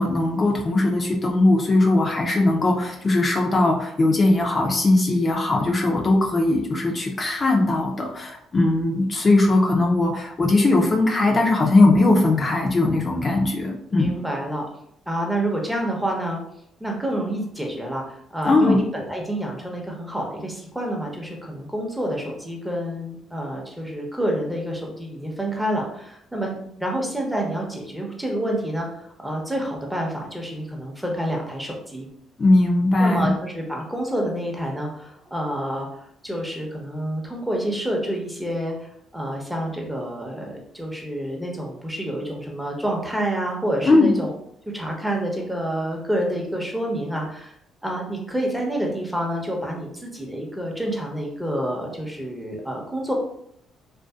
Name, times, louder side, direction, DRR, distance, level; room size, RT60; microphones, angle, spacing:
voice 1, 0.0-14.1 18.4-18.8 32.4-33.3 43.9-44.1, left 2 dB, 40° left, 0 dB, 0.5 m, -19 dB
voice 2, 9.5-10.0 13.9-14.6 15.1-16.4 16.8-26.5 26.8-32.1 33.0-44.3 44.7-47.6 47.8-53.1, right 1 dB, 5° right, 0 dB, 0.8 m, -28 dB
2.6 x 2.3 x 2.3 m, 0.72 s
supercardioid pair, 60°, 0 cm